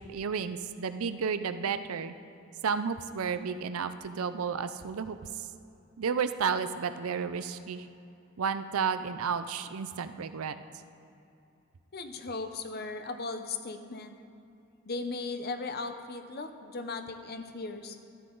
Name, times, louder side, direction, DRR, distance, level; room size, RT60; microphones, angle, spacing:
voice 1, 0.0-2.1 2.6-5.5 6.0-7.9 8.4-10.6, right 6 dB, 75° right, 11 dB, 0.5 m, -32 dB
voice 2, 11.9-14.2 14.9-18.0, left 3 dB, 45° left, 7 dB, 0.7 m, -37 dB
13.0 x 9.9 x 3.9 m, 2.7 s
head